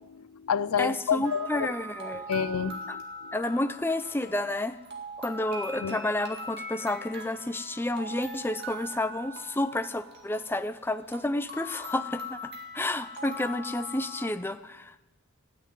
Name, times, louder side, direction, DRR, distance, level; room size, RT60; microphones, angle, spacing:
voice 1, 0.0-1.7 2.3-3.0 5.8-6.0, left 7 dB, 90° left, 17 dB, 0.5 m, -29 dB
voice 2, 0.8-2.3 2.9-3.0 3.3-4.8 5.2-15.0, left 1 dB, 10° left, 9 dB, 0.5 m, -30 dB
sound 1, 1.2-14.3, equal, 50° right, 2.0 m, -41 dB
13.0 x 9.7 x 9.2 m, 1.0 s
head